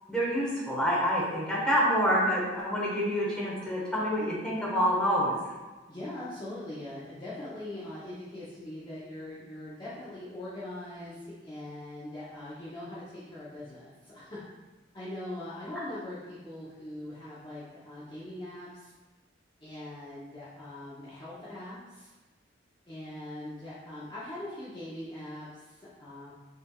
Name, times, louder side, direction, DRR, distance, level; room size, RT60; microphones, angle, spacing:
voice 1, 0.1-5.5, equal, 5° left, -6 dB, 1.1 m, -27 dB
voice 2, 5.9-14.4 14.9-18.9 19.6-22.1 22.9-26.3, left 1 dB, 25° left, -9 dB, 0.7 m, -41 dB
5.6 x 3.4 x 2.3 m, 1.2 s
head